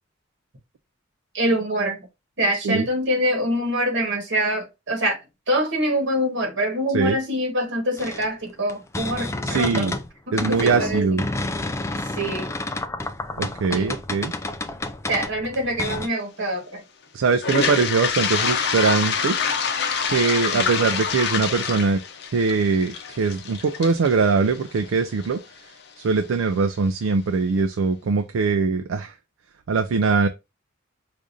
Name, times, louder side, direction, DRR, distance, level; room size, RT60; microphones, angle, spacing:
voice 1, 1.3-2.0 2.4-5.2 5.5-9.9 10.3-11.1 12.1-12.5 13.7-13.9 15.1-16.8 20.5-20.7, equal, 60° right, 1.4 m, -25 dB
sound 1, 8.0-10.1 10.4-16.1, left 2 dB, 15° left, 0.3 m, -30 dB
voice 2, 9.4-10.0 10.3-11.2 13.4-14.3 17.1-19.4 20.0-22.0 22.3-25.4 26.0-29.1 29.7-30.3, right 4 dB, 80° right, 0.4 m, -22 dB
Toilet flush, 17.3-25.3, left 6 dB, 55° left, 0.6 m, -26 dB
4.8 x 2.5 x 2.6 m
head